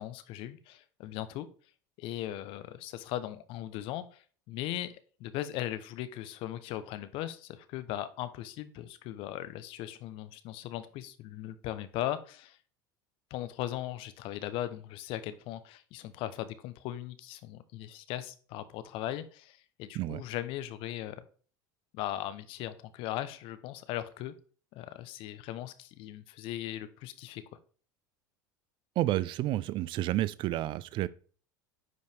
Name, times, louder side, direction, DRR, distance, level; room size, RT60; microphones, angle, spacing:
voice 1, 0.0-1.5 2.0-12.6 13.3-21.2 21.9-24.3 24.7-27.4, left 13 dB, 60° left, 0.9 m, -38 dB
voice 2, 29.0-31.1, right 15 dB, 50° right, 0.5 m, -30 dB
9.5 x 5.3 x 3.4 m
hypercardioid pair, 85°, 11 cm